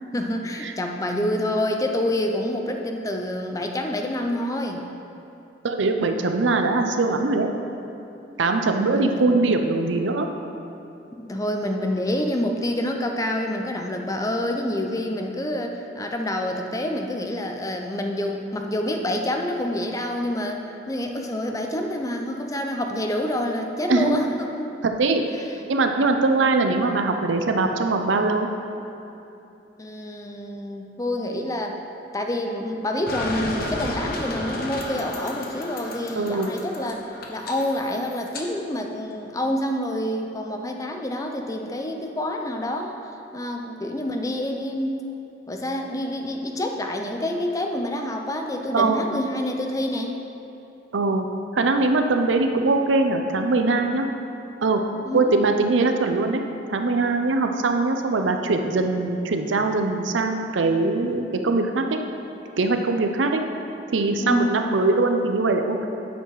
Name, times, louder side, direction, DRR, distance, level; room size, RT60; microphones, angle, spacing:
voice 1, 0.1-4.8 9.0-9.3 11.1-24.8 29.8-43.0 43.3-45.0 45.5-50.2 55.1-55.3 64.2-64.8, left 1 dB, 20° left, 3 dB, 0.5 m, -27 dB
voice 2, 5.6-7.5 8.4-10.3 23.9-24.2 24.8-25.3 25.7-28.5 36.2-36.6 48.7-49.1 50.9-51.3 51.5-54.1 54.6-54.8 55.1-56.4 56.7-62.0 62.6-63.4 63.9-65.9, right 3 dB, 90° right, 5 dB, 0.6 m, -22 dB
sound 1, 33.1-38.5, left 1 dB, 55° left, 0.8 m, -33 dB
8.1 x 5.6 x 4.7 m, 2.8 s
head